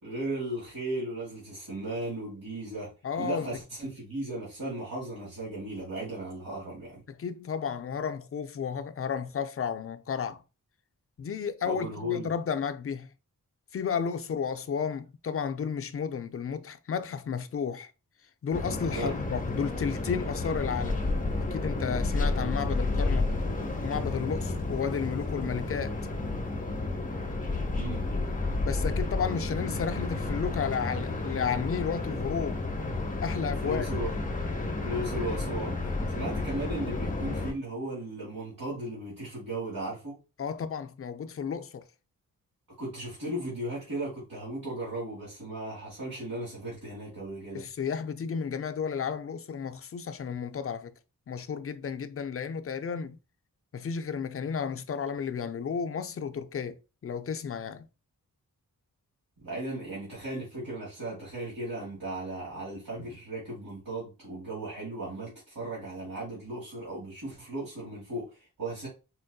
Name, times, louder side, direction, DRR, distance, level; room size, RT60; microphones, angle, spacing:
voice 1, 0.0-7.0 11.6-12.3 18.9-19.1 27.8-28.0 33.6-34.1 34.8-40.2 42.8-47.6 59.4-68.9, right 1 dB, 70° right, 1.9 m, -36 dB
voice 2, 3.0-3.5 7.1-10.4 11.2-13.1 13.7-17.9 18.4-21.0 21.5-23.3 23.8-26.0 28.6-32.6 33.2-33.9 40.4-41.8 47.5-50.9 51.3-53.2 53.7-57.9, left 6 dB, 40° left, 0.4 m, -32 dB
sound 1, 18.5-37.5, left 2 dB, 25° left, 0.8 m, -31 dB
4.3 x 2.5 x 2.2 m
cardioid pair, 65°, 34 cm